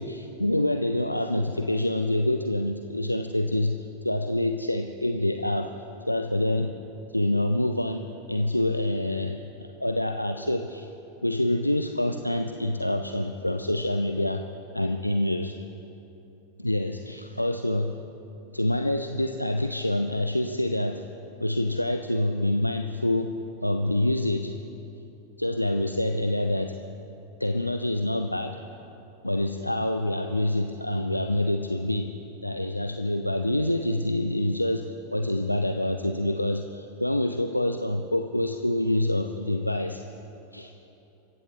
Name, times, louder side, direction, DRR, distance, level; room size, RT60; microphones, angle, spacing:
voice 1, 0.0-5.7 6.1-6.8 7.1-10.9 11.2-14.4 14.7-15.5 16.6-18.0 18.5-21.1 21.4-23.3 23.6-24.6 25.4-26.8 27.4-28.6 29.2-32.1 32.4-40.0 40.5-40.7, left 1 dB, 85° left, 7 dB, 0.5 m, -26 dB
25.5 x 15.0 x 3.1 m, 3.0 s
figure-of-eight pair, 90°, 0 cm